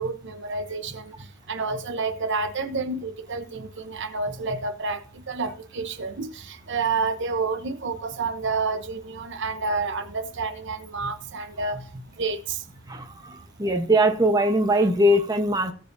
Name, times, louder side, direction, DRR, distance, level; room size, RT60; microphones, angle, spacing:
voice 1, 0.0-11.8 12.2-12.6, right 4 dB, 55° right, 0.9 m, -29 dB
voice 2, 12.9-15.7, equal, 20° right, 1.0 m, -21 dB
17.5 x 7.6 x 2.7 m
head